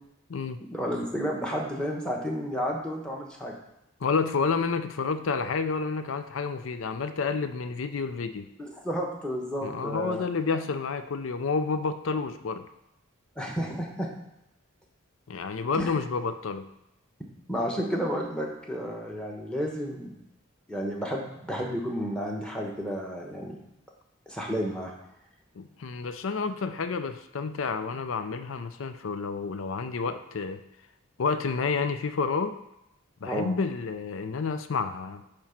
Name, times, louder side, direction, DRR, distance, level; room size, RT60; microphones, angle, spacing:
voice 1, 0.7-3.6 8.6-10.2 13.4-14.1 15.7-15.9 17.5-20.1 20.7-23.6 24.3-24.9 33.2-33.5, equal, 5° left, 0 dB, 1.1 m, -31 dB
voice 2, 4.0-8.5 9.6-12.7 15.3-16.7 25.6-30.6 31.2-32.6 33.2-35.2, left 4 dB, 70° left, 10 dB, 0.5 m, -30 dB
8.9 x 3.1 x 5.8 m, 0.86 s
head